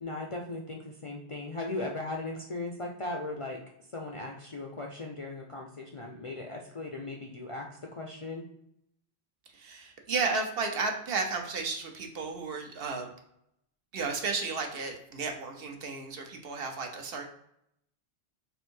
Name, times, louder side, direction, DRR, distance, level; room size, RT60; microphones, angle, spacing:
voice 1, 0.0-3.6 3.9-8.5, left 2 dB, 45° left, 0 dB, 0.4 m, -38 dB
voice 2, 9.5-13.1 13.9-17.2, right 4 dB, 65° right, 3 dB, 0.9 m, -33 dB
3.4 x 2.7 x 4.5 m, 0.76 s
omnidirectional pair, 1.1 m